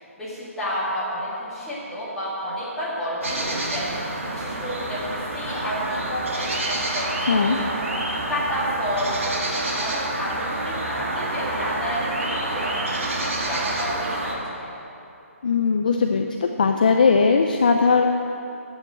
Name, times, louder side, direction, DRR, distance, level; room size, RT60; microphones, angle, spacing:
voice 1, 0.2-7.7 8.0-12.7 13.0-14.7, equal, 5° left, -11 dB, 2.4 m, -30 dB
sound 1, 3.2-14.3, right 2 dB, 65° right, 2.3 m, -28 dB
voice 2, 7.3-7.6 15.4-18.0, left 5 dB, 35° left, 4 dB, 0.5 m, -19 dB
10.5 x 8.5 x 7.9 m, 2.8 s
hypercardioid pair, 175°, 8 cm